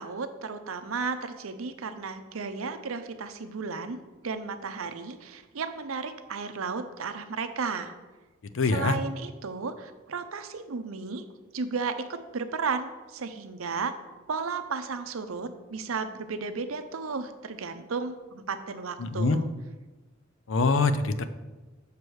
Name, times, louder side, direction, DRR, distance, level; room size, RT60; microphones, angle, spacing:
voice 1, 0.0-4.0 4.2-7.9 8.7-11.2 11.5-13.9 14.3-19.5, right 4 dB, 85° right, 9 dB, 0.6 m, -34 dB
voice 2, 8.5-9.0 19.0-19.4 20.5-21.3, left 3 dB, 65° left, 11 dB, 0.5 m, -24 dB
6.7 x 4.8 x 6.2 m, 1.2 s
head